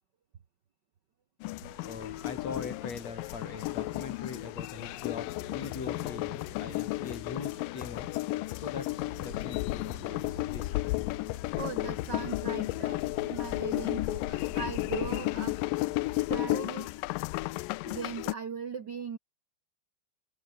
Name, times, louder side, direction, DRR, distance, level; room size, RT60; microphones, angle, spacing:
sound 1, 1.4-18.3, left 20 dB, 80° left, 2.1 m, -33 dB
sound 2, 1.6-16.2, left 2 dB, 20° left, 5.4 m, -49 dB
voice 1, 1.8-8.1 8.5-10.7, left 5 dB, 45° left, 4.8 m, -42 dB
voice 2, 11.6-15.6 16.3-16.9 17.8-19.2, right 6 dB, 65° right, 1.0 m, -39 dB
omnidirectional pair, 4.2 m